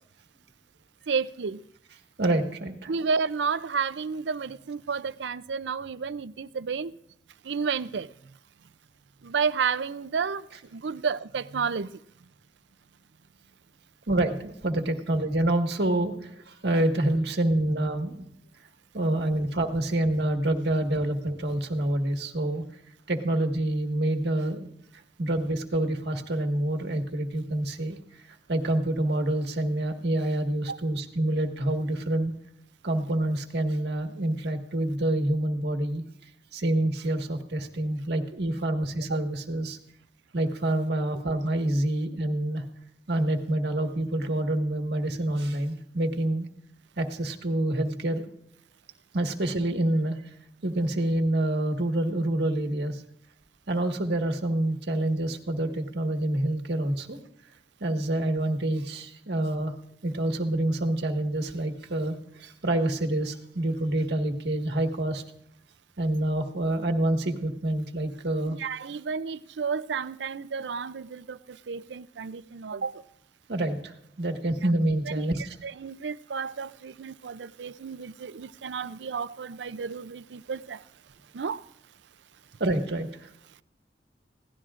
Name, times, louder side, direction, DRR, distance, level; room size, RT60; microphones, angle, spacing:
voice 1, 1.1-1.6 2.9-6.9 7.4-8.1 9.2-11.9 30.7-30.8 68.5-73.0 75.2-75.3 75.6-80.8 81.3-81.6, right 5 dB, 85° right, 0.5 m, -31 dB
voice 2, 2.2-2.9 14.1-18.2 18.9-22.6 23.1-24.7 25.2-28.0 28.5-32.3 32.8-36.0 36.5-39.8 40.3-42.6 43.1-46.5 47.0-48.3 49.1-50.2 50.6-53.0 53.7-57.2 57.8-59.7 60.0-65.2 66.0-68.6 73.5-75.6 82.6-83.3, right 1 dB, 65° right, 1.6 m, -27 dB
23.5 x 17.0 x 2.5 m
head